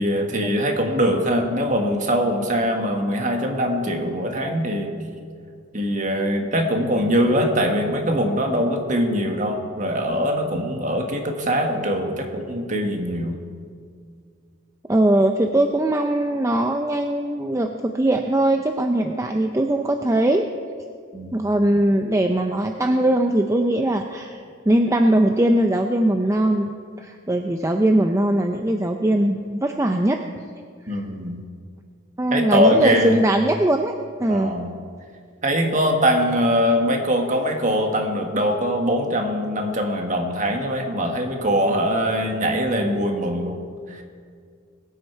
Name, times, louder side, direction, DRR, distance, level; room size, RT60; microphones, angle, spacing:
voice 1, 0.0-5.0 5.7-13.4 21.1-21.4 30.9-31.4 32.3-33.2 34.3-34.7 35.4-43.6 43.9-44.0, equal, 35° right, 3 dB, 1.5 m, -22 dB
voice 2, 14.9-20.5 21.3-30.2 30.8-31.0 32.2-33.9 34.2-34.5, right 1 dB, 15° right, 5 dB, 0.4 m, -20 dB
21.0 x 9.8 x 4.6 m, 2.1 s
head